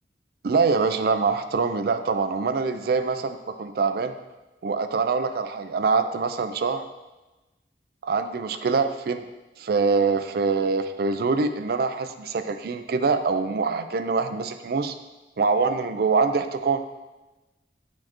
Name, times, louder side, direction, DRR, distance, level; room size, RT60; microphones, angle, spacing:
voice 1, 0.4-4.2 4.6-6.8 8.0-9.2 9.6-14.9 15.4-16.8, right 4 dB, 55° right, 9 dB, 0.4 m, -24 dB
9.9 x 4.3 x 3.0 m, 1.1 s
head